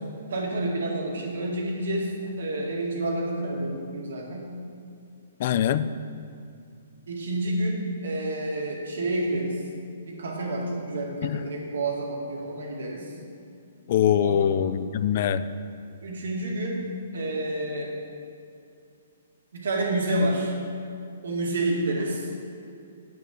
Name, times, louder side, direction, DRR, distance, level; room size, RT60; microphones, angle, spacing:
voice 1, 0.3-4.5 7.1-9.6 10.0-13.1 14.2-14.5 16.0-16.8 17.1-17.9 19.5-20.5 21.2-22.3, right 1 dB, 80° right, -2 dB, 2.3 m, -29 dB
voice 2, 5.4-5.9 11.2-11.4 13.9-15.4, left 9 dB, 50° left, 14 dB, 0.4 m, -23 dB
9.0 x 6.5 x 6.5 m, 2.5 s
hypercardioid pair, 150°, 0 cm